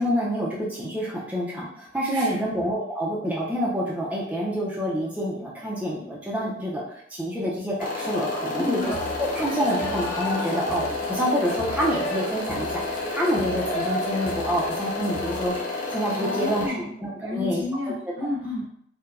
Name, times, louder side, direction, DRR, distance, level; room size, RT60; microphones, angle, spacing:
voice 1, 0.0-8.8 9.3-16.7 17.0-17.6, equal, 10° right, -5 dB, 0.5 m, -27 dB
voice 2, 2.1-2.5 8.5-9.0 16.1-18.7, left 1 dB, 65° right, -2 dB, 1.0 m, -31 dB
sound 1, 7.8-16.7, left 2 dB, 45° left, 0.6 m, -31 dB
sound 2, 8.8-15.5, equal, 15° left, 0.9 m, -34 dB
4.6 x 2.1 x 2.5 m, 0.69 s
head